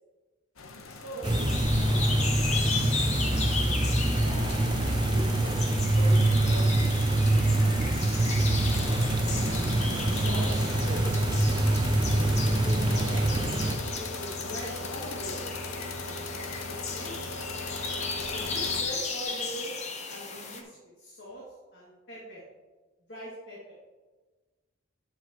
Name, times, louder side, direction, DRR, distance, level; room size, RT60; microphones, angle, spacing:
sound 1, 0.6-18.8, left 3 dB, 85° left, 0.8 m, -39 dB
voice 1, 0.8-2.8 4.1-4.6 5.1-8.0 8.7-9.2 10.1-11.1 12.6-13.5 13.8-15.4 16.6-17.1 18.3-19.7 20.0-21.4 21.7-22.4 23.1-23.7, equal, 55° left, -6 dB, 2.2 m, -42 dB
sound 2, 1.2-20.6, left 4 dB, 35° left, 0.9 m, -36 dB
sound 3, 1.2-13.8, right 1 dB, 20° right, 0.5 m, -25 dB
9.9 x 7.9 x 3.0 m, 1.3 s
head